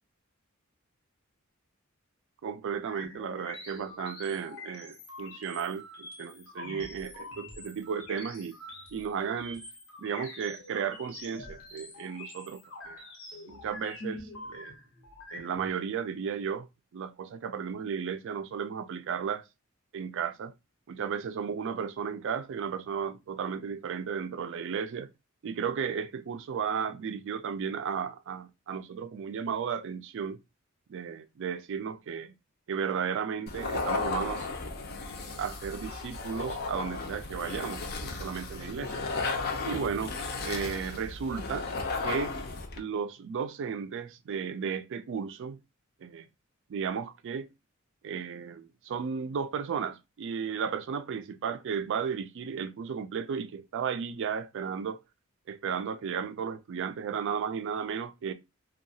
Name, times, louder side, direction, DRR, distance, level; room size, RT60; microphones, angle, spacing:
voice 1, 2.4-8.5 8.9-9.6 10.0-12.6 12.9-13.0 13.5-14.7 15.3-16.7 16.9-19.4 19.9-20.5 20.9-25.1 25.4-30.4 30.9-32.3 32.7-34.5 35.4-39.0 39.7-40.2 40.4-41.7 42.0-42.4 42.8-45.6 46.0-46.3 46.7-47.5 48.0-55.0 55.5-58.3, right 6 dB, 60° right, 0.3 m, -34 dB
sound 1, 2.8-15.7, left 2 dB, 85° left, 0.9 m, -45 dB
sound 2, 33.5-42.8, left 3 dB, 50° left, 0.5 m, -35 dB
2.7 x 2.3 x 2.6 m
head